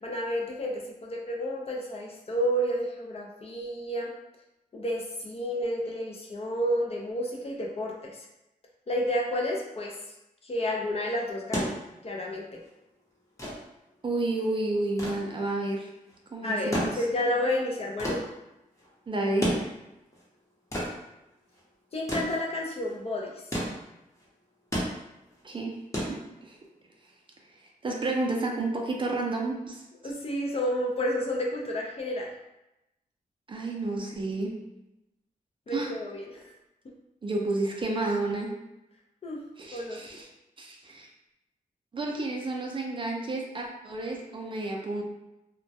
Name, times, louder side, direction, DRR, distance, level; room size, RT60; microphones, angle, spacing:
voice 1, 0.0-4.1 4.7-8.1 8.9-9.9 10.4-11.8 12.0-12.6 16.4-18.2 21.9-23.3 30.0-32.3 35.7-36.2 39.2-39.4 39.7-40.2, equal, 45° left, -1 dB, 0.5 m, -30 dB
sound 1, 11.3-26.8 28.0-28.1, equal, 20° left, 0.8 m, -35 dB
voice 2, 14.0-15.9 16.3-17.0 19.1-19.6 25.4-25.7 26.1-26.6 27.8-29.8 33.5-34.5 35.7-35.9 37.2-38.5 39.6-40.3 40.6-41.1 41.9-45.0, right 2 dB, 35° right, 0 dB, 0.4 m, -31 dB
2.2 x 2.1 x 2.7 m, 0.92 s
cardioid pair, 85°, 15 cm